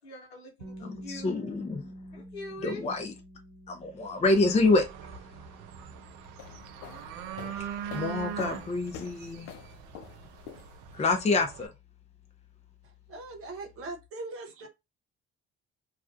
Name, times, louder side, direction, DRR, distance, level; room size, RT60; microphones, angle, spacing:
voice 1, 0.0-1.4 2.1-2.8 14.6-14.7, left 1 dB, 90° left, 0.8 m, -43 dB
sound 1, 0.6-12.4, equal, 85° right, 0.8 m, -50 dB
voice 2, 0.8-1.8 2.6-3.1 3.7-4.9 7.6-9.5 10.9-11.7, left 3 dB, 20° left, 0.6 m, -27 dB
sound 2, 4.2-11.7, right 8 dB, 65° right, 0.4 m, -42 dB
sound 3, 6.2-11.1, left 9 dB, 65° left, 0.5 m, -46 dB
voice 3, 13.1-14.7, right 2 dB, 45° right, 0.9 m, -40 dB
2.4 x 2.3 x 2.3 m
hypercardioid pair, 50°, 30 cm